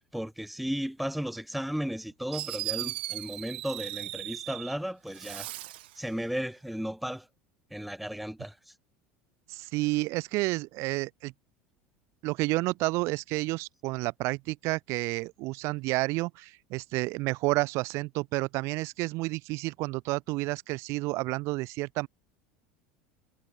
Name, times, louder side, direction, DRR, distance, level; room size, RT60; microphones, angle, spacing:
voice 1, 0.1-5.5 5.9-7.3 7.7-8.7, equal, ahead, 0.9 m, -35 dB
Fireworks, 1.9-2.0 2.3-4.8 5.1-6.0, right 17 dB, 85° right, 1.8 m, -37 dB
voice 2, 9.5-11.3 12.2-22.1, right 22 dB, 60° right, 2.0 m, -30 dB
supercardioid pair, 105°, 5 cm